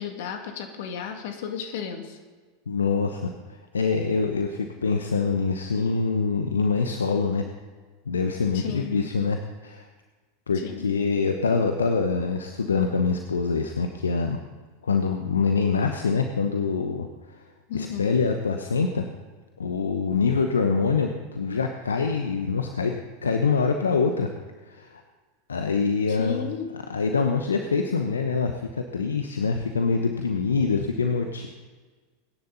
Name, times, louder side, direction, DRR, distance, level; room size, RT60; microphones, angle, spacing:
voice 1, 0.0-2.2 8.5-9.2 10.5-10.9 17.7-18.2 26.1-26.7, left 7 dB, 60° left, 4 dB, 2.3 m, -34 dB
voice 2, 2.7-7.4 8.1-9.4 9.6-9.9 10.5-14.4 14.8-17.4 17.7-19.0 19.6-22.9 23.2-24.3 24.7-25.0 25.5-26.4 26.9-31.5, left 4 dB, 80° left, 5 dB, 1.0 m, -25 dB
23.5 x 10.5 x 4.1 m, 1.4 s
figure-of-eight pair, 85°, 0 cm